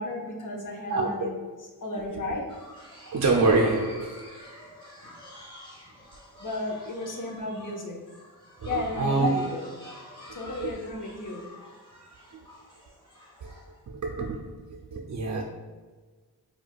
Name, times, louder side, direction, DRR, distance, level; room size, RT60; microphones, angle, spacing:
voice 1, 0.0-1.3 1.8-2.5 6.4-8.0 8.6-9.7 10.3-11.5, left 2 dB, 50° left, 0 dB, 0.7 m, -34 dB
voice 2, 0.9-1.3 3.0-4.2 8.7-9.3 10.6-10.7 12.3-12.4 13.4-13.5 13.9-15.4, right 3 dB, 45° right, -1 dB, 0.4 m, -26 dB
sound 1, 2.5-13.8, left 1 dB, 10° left, 1.1 m, -49 dB
4.6 x 2.3 x 2.3 m, 1.4 s
wide cardioid pair, 70°, 40 cm